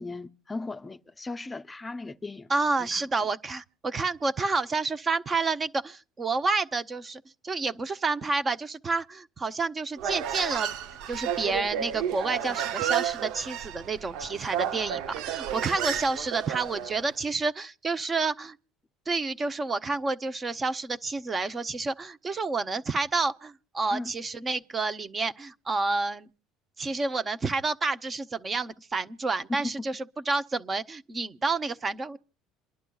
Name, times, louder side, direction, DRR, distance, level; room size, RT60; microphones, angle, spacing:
voice 1, 0.0-2.5 2.8-3.0 23.9-24.1, left 3 dB, 15° left, 0.6 m, -37 dB
voice 2, 2.5-10.8 11.1-18.6 19.1-26.3 26.8-32.2, right 3 dB, 25° right, 0.8 m, -29 dB
Human voice, 10.0-17.1, right 9 dB, 70° right, 0.7 m, -32 dB
28.5 x 11.5 x 2.3 m
cardioid pair, 125°, 0 cm